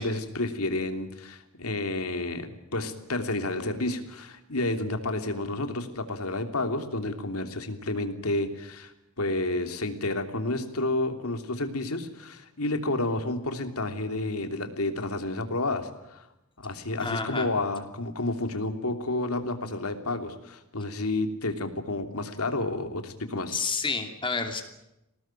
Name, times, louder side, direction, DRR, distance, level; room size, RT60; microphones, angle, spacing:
voice 1, 0.0-8.9 9.2-16.2 16.6-23.6, left 2 dB, 90° left, 7 dB, 3.1 m, -30 dB
voice 2, 17.0-17.5 23.5-24.6, left 4 dB, 25° left, 5 dB, 2.8 m, -29 dB
24.5 x 19.0 x 9.1 m, 0.89 s
head